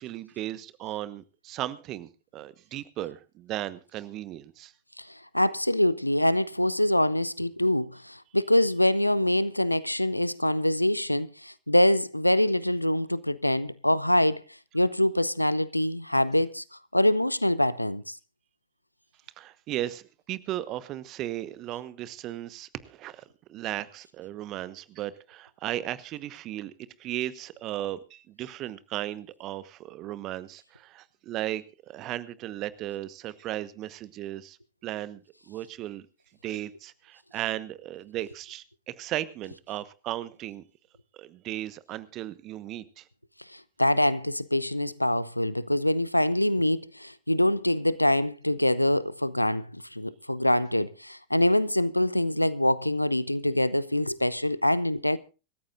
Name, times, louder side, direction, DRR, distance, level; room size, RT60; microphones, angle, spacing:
voice 1, 0.0-4.7 19.4-23.2 23.5-26.7 27.0-34.6 34.8-36.0 36.4-40.6 41.1-43.0, right 14 dB, 35° right, 1.1 m, -36 dB
voice 2, 5.3-14.4 14.7-16.6 16.9-18.2 43.5-55.2, left 1 dB, 85° left, 0.7 m, -24 dB
25.5 x 14.0 x 2.5 m
figure-of-eight pair, 90°, 0 cm